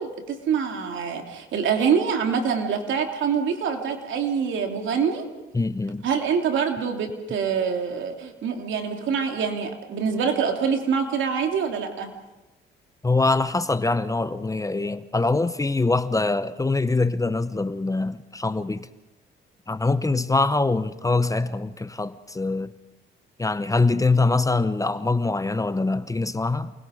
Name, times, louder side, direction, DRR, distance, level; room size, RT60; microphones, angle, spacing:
voice 1, 0.0-5.2 6.0-12.1, right 6 dB, 75° right, 3.1 m, -25 dB
voice 2, 5.5-6.1 13.0-18.9 19.7-22.7 23.4-26.7, left 3 dB, 15° left, 0.8 m, -23 dB
28.0 x 21.0 x 5.3 m
cardioid pair, 90°, 20 cm